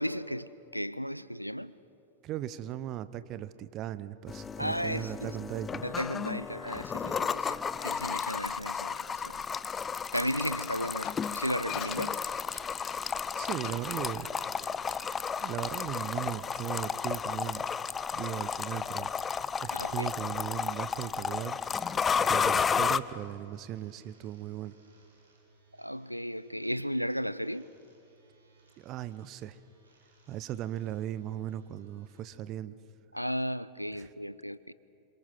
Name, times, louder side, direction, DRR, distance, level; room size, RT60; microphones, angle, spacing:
voice 1, 0.0-1.7 4.6-5.4 5.8-9.4 10.1-12.2 19.7-20.1 25.8-27.7 33.1-34.7, equal, 90° left, 0.6 m, -35 dB
voice 2, 2.2-5.9 13.3-14.3 14.9-15.1 15.4-17.7 18.1-21.6 22.2-24.7 28.8-29.6 30.3-32.7 34.0-34.1, right 12 dB, 35° right, 0.9 m, -38 dB
sound 1, 4.3-23.0, left 6 dB, 20° left, 0.6 m, -33 dB
Glass, 11.0-12.9 13.5-13.8 14.1-14.3, left 11 dB, 35° left, 1.5 m, -43 dB
sound 2, 21.5-32.2, right 2 dB, 75° right, 5.9 m, -65 dB
28.0 x 26.5 x 6.0 m
figure-of-eight pair, 90°, 0 cm